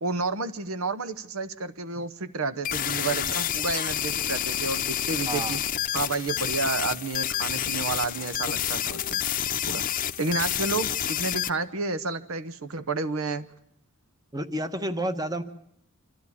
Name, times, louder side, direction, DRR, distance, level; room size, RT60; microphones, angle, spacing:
voice 1, 0.0-5.6 5.9-9.2 9.7-9.8 10.2-13.5, right 3 dB, 70° right, 14 dB, 0.9 m, -30 dB
sound 1, 2.6-11.5, left 10 dB, 40° left, 0.8 m, -29 dB
voice 2, 5.3-5.6 14.3-15.4, right 1 dB, 15° right, 10 dB, 1.1 m, -30 dB
26.5 x 13.0 x 8.4 m, 0.76 s
head